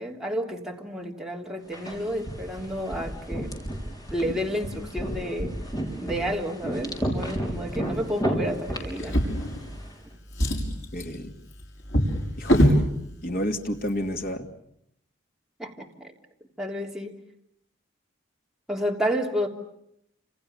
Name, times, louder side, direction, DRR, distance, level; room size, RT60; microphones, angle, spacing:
voice 1, 0.0-3.5 4.1-5.6 6.0-9.2 15.6-16.1 16.6-17.2 18.7-19.5, equal, 5° right, -1 dB, 3.2 m, -30 dB
sound 1, 1.7-9.9, right 1 dB, 20° left, 6.6 m, -32 dB
Drawer open or close, 8.9-9.9 10.3-12.9 13.8-13.9 14.3-14.4, equal, 70° left, 6.1 m, -24 dB
voice 2, 10.9-11.3 12.4-12.8 13.2-14.5, equal, 50° left, 5 dB, 2.5 m, -30 dB
30.0 x 28.0 x 7.1 m, 0.76 s
head